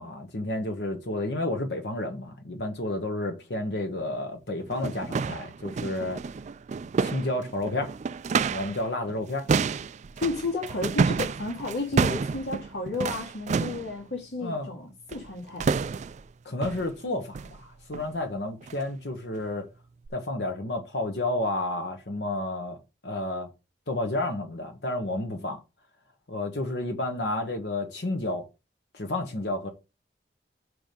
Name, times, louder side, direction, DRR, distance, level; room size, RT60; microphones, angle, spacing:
voice 1, 0.0-6.2 7.0-7.9 8.5-9.5 14.4-14.7 16.4-19.7 20.1-22.8 23.0-23.5 23.9-25.6 26.3-28.5 28.9-29.7, left 2 dB, 70° left, 1.3 m, -31 dB
sound 1, 4.0-4.1 4.6-8.8 9.1-13.9 15.1-15.3 15.6-16.2 16.6-16.9 17.3-17.6 17.9-18.1 18.6-18.8 19.3-19.4 20.1-20.2, right 5 dB, 40° right, 0.3 m, -29 dB
voice 2, 10.2-15.9, left 2 dB, 85° left, 2.2 m, -32 dB
6.2 x 4.9 x 5.2 m
head